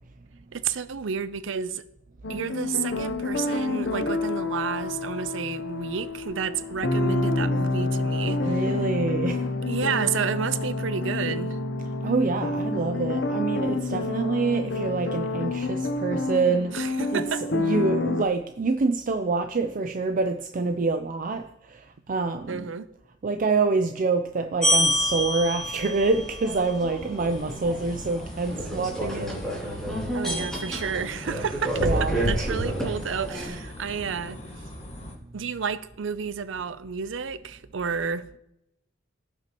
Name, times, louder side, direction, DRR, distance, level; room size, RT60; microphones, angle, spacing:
voice 1, 0.5-1.8 2.3-8.6 9.7-11.6 16.7-17.5 22.5-22.9 30.1-34.4 35.3-38.3, right 6 dB, 90° right, 0.5 m, -31 dB
sound 1, 2.2-18.2, left 2 dB, 65° left, 0.8 m, -28 dB
voice 2, 8.4-9.4 12.0-17.2 17.5-22.7 23.2-29.8 30.2-30.7 31.8-32.5 33.5-33.6, right 3 dB, 45° right, 0.5 m, -26 dB
sound 2, 24.6-33.5, equal, 5° left, 2.7 m, -28 dB
sound 3, 27.2-35.2, left 1 dB, 35° left, 1.3 m, -41 dB
16.5 x 5.9 x 3.0 m
head